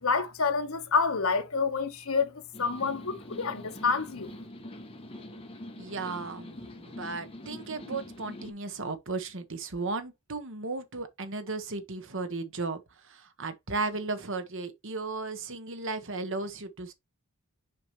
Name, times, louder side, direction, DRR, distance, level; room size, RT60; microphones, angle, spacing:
voice 1, 0.0-4.3, left 5 dB, 65° left, 1.0 m, -28 dB
sound 1, 2.5-8.5, left 1 dB, 25° left, 1.3 m, -44 dB
voice 2, 5.8-16.9, right 3 dB, 60° right, 1.2 m, -35 dB
7.1 x 4.7 x 3.0 m
head